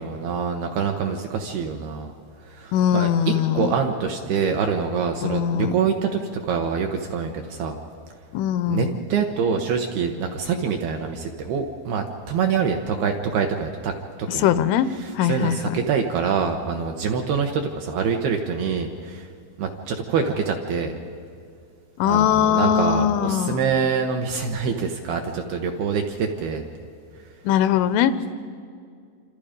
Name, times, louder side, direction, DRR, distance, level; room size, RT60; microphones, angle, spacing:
voice 1, 0.0-2.1 2.5-7.8 8.7-13.9 14.2-14.5 15.0-19.3 19.6-20.9 22.1-26.6, right 6 dB, 70° right, 3 dB, 2.5 m, -25 dB
voice 2, 2.7-3.7 5.2-5.8 8.3-9.0 14.3-14.9 15.2-15.8 22.0-23.6 27.4-28.3, left 9 dB, 85° left, 12 dB, 3.2 m, -21 dB
27.5 x 27.0 x 5.2 m, 2.2 s
omnidirectional pair, 5.5 m